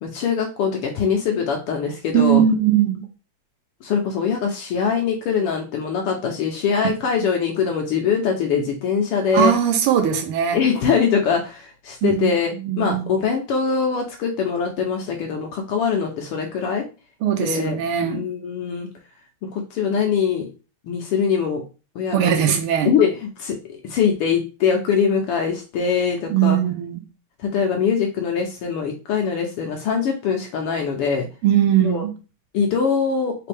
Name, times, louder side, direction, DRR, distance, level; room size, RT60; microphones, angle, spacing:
voice 1, 0.0-2.4 3.8-9.5 10.5-16.8 17.4-18.9 19.5-20.5 20.8-21.6 21.9-22.6 22.8-26.6 27.4-31.3 31.8-32.0 32.5-33.3, left 6 dB, 85° left, 2 dB, 1.2 m, -22 dB
voice 2, 2.1-3.0 9.3-10.6 12.0-13.1 17.2-18.2 22.1-22.9 26.3-27.0 31.4-32.1, right 9 dB, 85° right, 4 dB, 1.2 m, -20 dB
4.1 x 3.4 x 3.3 m, 0.32 s
omnidirectional pair, 3.4 m